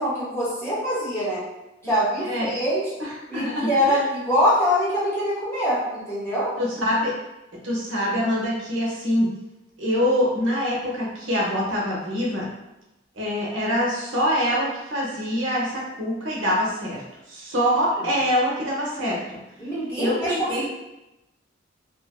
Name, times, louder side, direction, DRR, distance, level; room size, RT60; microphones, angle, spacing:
voice 1, 0.0-1.4 1.8-2.9 3.3-6.5 18.0-18.1 19.6-20.7, equal, 15° left, -9 dB, 0.8 m, -24 dB
voice 2, 1.8-2.5 3.0-4.0 6.6-7.1 7.6-9.3 9.8-12.5 13.2-17.0 17.3-19.4 20.0-20.7, equal, 75° right, -4 dB, 0.7 m, -25 dB
2.7 x 2.4 x 2.2 m, 0.96 s
head